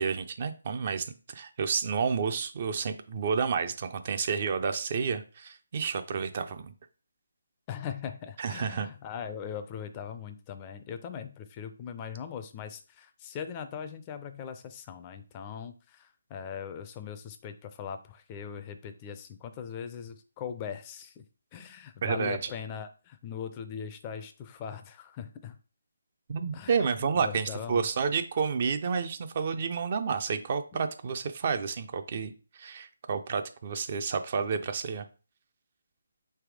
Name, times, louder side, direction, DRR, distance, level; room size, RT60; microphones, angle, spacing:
voice 1, 0.0-6.7 8.4-8.9 22.0-22.5 26.3-35.1, right 6 dB, 40° right, 9 dB, 0.4 m, -30 dB
voice 2, 7.7-21.2 21.5-25.6 26.5-26.8 27.1-27.9 30.7-30.8, left 7 dB, 25° left, 9 dB, 0.4 m, -40 dB
3.4 x 3.1 x 4.8 m, 0.35 s
figure-of-eight pair, 150°, 0 cm